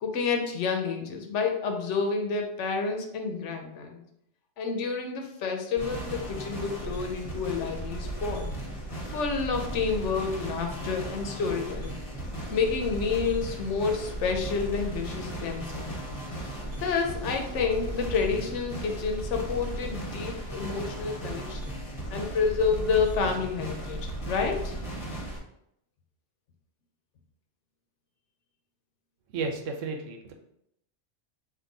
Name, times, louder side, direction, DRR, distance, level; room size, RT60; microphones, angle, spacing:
voice 1, 0.0-4.0 4.6-8.5 9.1-12.0 12.5-16.0 16.8-24.7, left 5 dB, 75° left, 3 dB, 1.0 m, -29 dB
sound 1, 5.8-25.4, right 1 dB, 30° left, 1.0 m, -36 dB
voice 2, 29.3-30.3, right 4 dB, 90° right, 4 dB, 1.0 m, -33 dB
3.7 x 2.6 x 4.0 m, 0.76 s
omnidirectional pair, 1.3 m